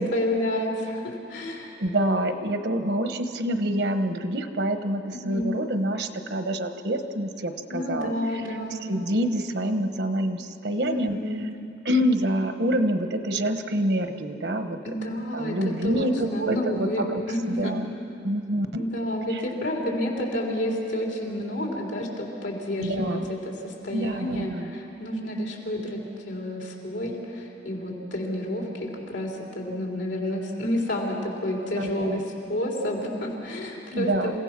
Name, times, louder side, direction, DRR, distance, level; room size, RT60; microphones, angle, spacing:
voice 1, 0.0-1.7 5.1-5.5 7.7-8.8 10.8-11.5 14.8-15.6 15.8-17.7 18.7-32.2 32.5-34.4, left 1 dB, 85° left, -1 dB, 3.8 m, -30 dB
voice 2, 1.8-8.1 8.9-11.2 11.8-14.8 15.3-17.1 17.6-17.9 18.2-18.9 19.3-19.4 22.8-23.3 23.9-24.7 31.8-32.2 33.9-34.4, right 1 dB, 65° right, 8 dB, 1.1 m, -26 dB
27.5 x 16.5 x 6.1 m, 2.9 s
head